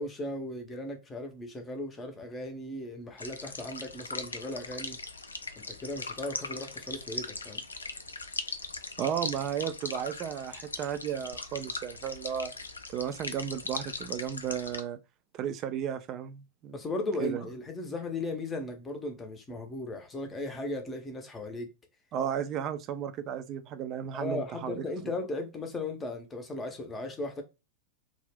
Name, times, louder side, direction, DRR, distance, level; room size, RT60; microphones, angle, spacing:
voice 1, 0.0-5.0 5.6-7.6 16.7-21.7 24.1-27.4, left 2 dB, 15° left, 0.6 m, -37 dB
sound 1, 3.2-14.8, left 3 dB, 75° left, 0.3 m, -40 dB
voice 2, 9.0-12.5 12.9-15.0 15.3-16.8 17.2-17.5 22.1-24.8, right 9 dB, 35° right, 0.4 m, -34 dB
2.4 x 2.1 x 3.4 m
figure-of-eight pair, 90°, 0 cm